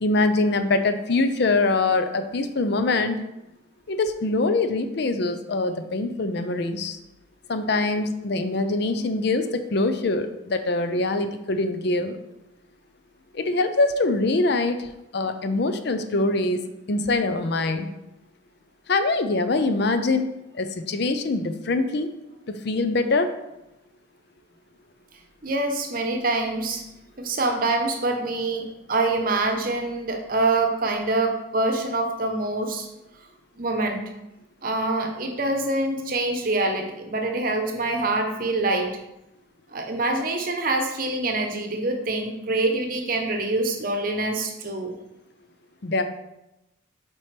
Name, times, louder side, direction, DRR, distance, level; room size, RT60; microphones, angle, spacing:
voice 1, 0.0-3.2 3.9-7.0 7.5-12.2 13.3-16.6 16.9-17.9 18.9-22.1 22.5-23.3 45.8-46.0, left 2 dB, 55° left, 9 dB, 0.5 m, -24 dB
voice 2, 25.4-26.8 27.2-32.9 33.6-34.0 34.6-39.0 39.7-45.0, right 2 dB, 45° right, 4 dB, 0.8 m, -25 dB
7.4 x 4.5 x 3.3 m, 0.92 s
head